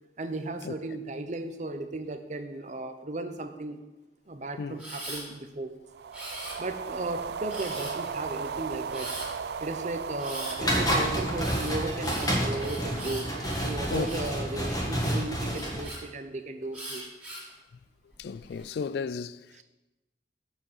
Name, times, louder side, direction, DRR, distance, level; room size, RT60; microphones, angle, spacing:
voice 1, 0.2-3.8 4.3-5.7 6.6-9.1 9.6-13.3 13.6-17.1 19.5-19.6, right 2 dB, 40° right, 0.8 m, -35 dB
Camera, 4.8-5.2 6.1-6.9 7.5-8.1 8.9-9.3 10.2-10.6 11.4-14.3 14.9-16.0 16.7-17.5 18.1-18.6, right 1 dB, 10° right, 2.5 m, -40 dB
sound 1, 5.9-15.4, right 6 dB, 65° right, 0.3 m, -38 dB
sound 2, 10.6-15.8, equal, 20° left, 1.7 m, -29 dB
voice 2, 18.2-19.4, left 5 dB, 65° left, 0.3 m, -33 dB
7.2 x 6.3 x 7.3 m
head